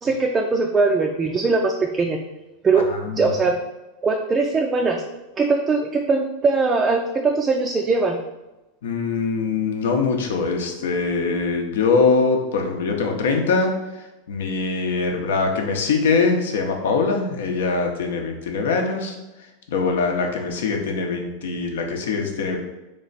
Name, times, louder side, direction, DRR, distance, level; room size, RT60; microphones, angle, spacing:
voice 1, 0.0-2.2 2.6-2.9 3.2-3.6 4.0-5.0 5.4-8.2, right 4 dB, 20° right, 2 dB, 0.3 m, -20 dB
voice 2, 2.9-3.3 8.8-13.7 14.3-19.2 19.7-22.6, left 4 dB, 85° left, 3 dB, 0.8 m, -22 dB
3.4 x 3.1 x 4.0 m, 1.0 s
supercardioid pair, 140°, 0 cm